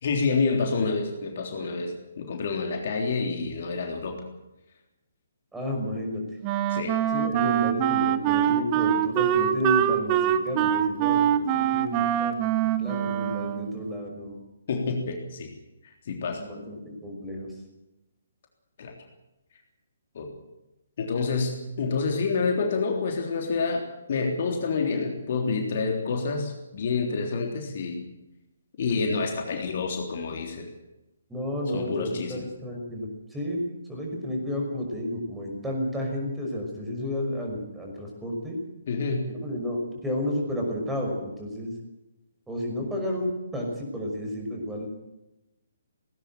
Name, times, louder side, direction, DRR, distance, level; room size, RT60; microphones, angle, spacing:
voice 1, 0.0-4.2 6.7-7.0 14.7-15.5 15.8-16.4 18.8-18.9 20.1-20.3 21.0-28.0 28.8-30.7 31.7-32.4 38.9-39.3, left 4 dB, 45° left, 2 dB, 3.5 m, -28 dB
voice 2, 5.5-6.2 7.1-12.4 12.6-14.4 16.4-17.5 31.3-38.6 39.3-41.7 42.5-45.0, left 1 dB, 5° right, 0 dB, 5.9 m, -31 dB
Wind instrument woodwind instrument, 6.4-13.8, right 11 dB, 25° right, 1.1 m, -24 dB
19.0 x 18.5 x 7.8 m, 0.96 s
figure-of-eight pair, 135°, 0 cm